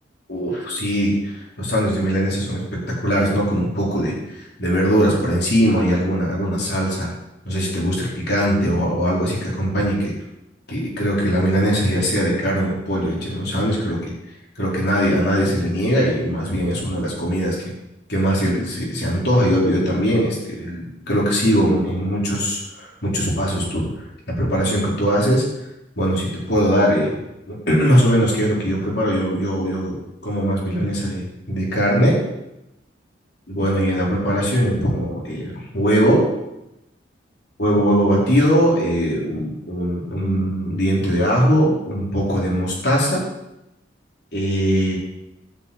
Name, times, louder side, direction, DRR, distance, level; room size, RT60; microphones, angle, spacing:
voice 1, 0.3-7.1 7.4-10.1 10.7-14.1 14.6-17.7 18.1-23.9 24.3-25.5 26.0-27.2 27.5-32.2 33.5-36.3 37.6-43.2 44.3-45.0, equal, 60° left, -4 dB, 4.4 m, -20 dB
12.5 x 5.9 x 8.8 m, 0.91 s
head